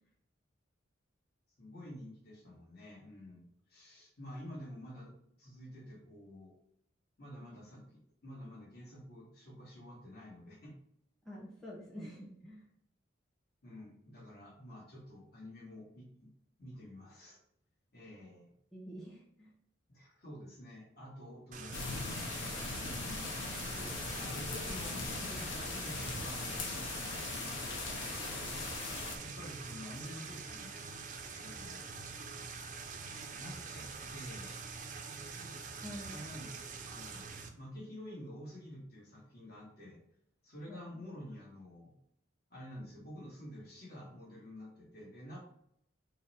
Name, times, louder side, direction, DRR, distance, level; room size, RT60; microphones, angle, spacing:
voice 1, 1.6-5.1 5.4-6.5 7.2-10.7 13.6-16.3 16.6-17.4 17.9-18.5 19.9-21.9 22.8-23.3 23.7-26.4 27.4-28.2 29.2-30.7 31.4-31.9 33.1-34.6 36.1-36.5 36.8-37.3 37.6-40.0 40.4-41.9 42.5-45.4, equal, 50° left, -2 dB, 1.2 m, -49 dB
voice 2, 11.2-12.6 18.7-19.5 35.8-36.2 40.7-40.8, equal, ahead, -5 dB, 0.8 m, -47 dB
sound 1, 21.5-37.5, right 5 dB, 40° right, 0.4 m, -45 dB
sound 2, 21.7-29.2, left 3 dB, 75° left, 0.7 m, -39 dB
4.0 x 2.1 x 4.1 m, 0.71 s
head